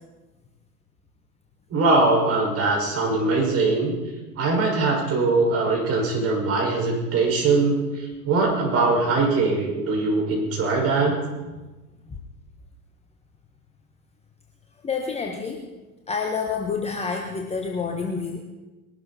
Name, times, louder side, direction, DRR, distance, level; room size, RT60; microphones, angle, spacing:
voice 1, 1.7-3.9 4.4-11.1, right 3 dB, 30° right, -1 dB, 5.9 m, -22 dB
voice 2, 14.8-15.6 16.1-18.4, left 5 dB, 15° left, 2 dB, 1.3 m, -28 dB
21.0 x 12.5 x 4.3 m, 1.1 s
figure-of-eight pair, 95°, 46 cm